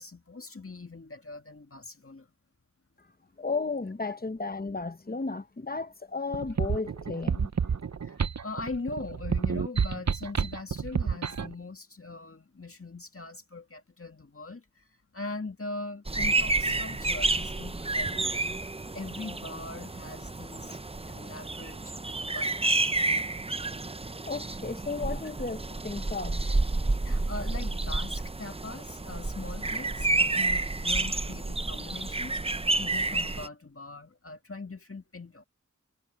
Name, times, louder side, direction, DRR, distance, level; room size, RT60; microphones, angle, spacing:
voice 1, 0.0-2.3 8.0-14.8 15.1-20.8 21.0-22.9 27.0-35.5, left 3 dB, 45° left, 2.0 m, -41 dB
voice 2, 3.4-7.5 24.3-26.5, left 4 dB, 30° left, 0.9 m, -34 dB
sound 1, 6.3-11.5, right 6 dB, 55° right, 0.7 m, -29 dB
sound 2, 16.1-33.5, right 2 dB, 20° right, 0.6 m, -30 dB
wide cardioid pair, 45°, 32 cm